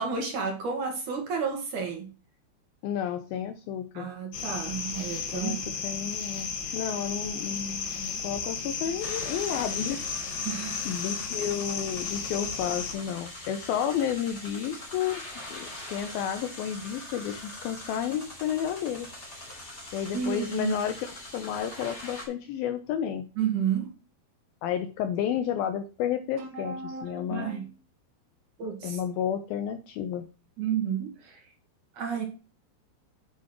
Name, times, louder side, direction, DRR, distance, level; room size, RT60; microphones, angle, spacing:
voice 1, 0.0-2.1 3.9-5.6 10.4-11.0 20.1-20.7 23.4-23.9 26.4-27.7 28.6-29.0 30.6-31.4 31.9-32.2, right 7 dB, 55° right, 2 dB, 2.8 m, -31 dB
voice 2, 2.8-4.1 5.3-10.1 10.9-19.1 19.9-23.3 24.6-27.5 28.8-30.3, left 9 dB, 75° left, 8 dB, 2.3 m, -31 dB
sound 1, 4.3-12.9, left 5 dB, 60° left, 3.2 m, -34 dB
sound 2, 9.0-22.3, left 1 dB, 20° left, 2.7 m, -42 dB
8.6 x 7.9 x 3.0 m, 0.33 s
omnidirectional pair, 4.9 m